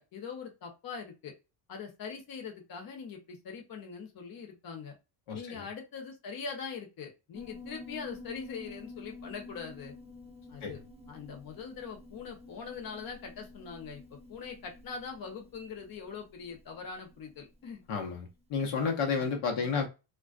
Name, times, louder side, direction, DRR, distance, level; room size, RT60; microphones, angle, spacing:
voice 1, 0.0-1.3 1.7-5.0 5.3-9.9 10.5-10.8 11.1-17.8 19.2-19.3 19.6-19.8, left 5 dB, 45° left, 0.9 m, -42 dB
voice 2, 5.3-5.6 10.6-10.8 17.9-19.9, left 5 dB, 80° left, 0.9 m, -31 dB
Piano, 7.3-18.1, left 3 dB, 15° right, 0.4 m, -49 dB
2.4 x 2.1 x 2.4 m
cardioid pair, 115°, 50 cm